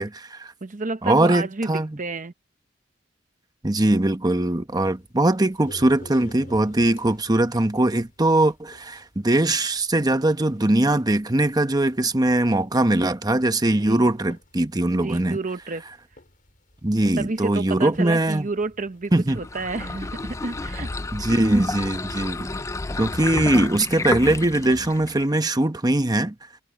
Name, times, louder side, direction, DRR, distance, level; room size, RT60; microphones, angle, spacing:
voice 1, 0.0-0.5 1.0-2.0 3.6-15.4 16.8-18.5 19.1-19.4 21.1-22.5 23.0-26.3, right 1 dB, 20° right, 1.0 m, -21 dB
voice 2, 0.6-2.3 13.8-14.1 14.9-15.8 17.2-20.9, right 3 dB, 45° right, 0.8 m, -30 dB
sound 1, 4.8-23.0, left 1 dB, 45° left, 6.7 m, -52 dB
sound 2, 19.3-25.3, left 2 dB, 15° left, 0.4 m, -31 dB
head